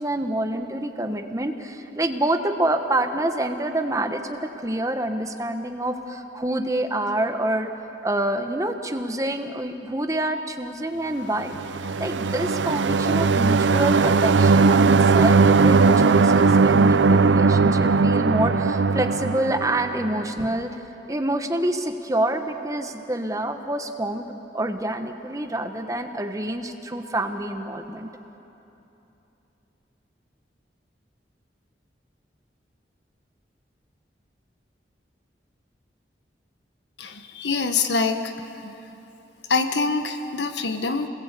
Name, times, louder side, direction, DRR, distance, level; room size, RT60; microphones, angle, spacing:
voice 1, 0.0-7.7 8.0-11.6 12.0-20.8 21.1-24.3 24.5-28.1, right 1 dB, 20° right, 6 dB, 1.1 m, -27 dB
sound 1, 11.5-20.2, right 4 dB, 85° right, 0.6 m, -18 dB
voice 2, 37.0-38.3 38.6-38.7 39.5-41.1, left 4 dB, 75° left, 7 dB, 1.3 m, -25 dB
27.5 x 20.5 x 8.3 m, 3.0 s
head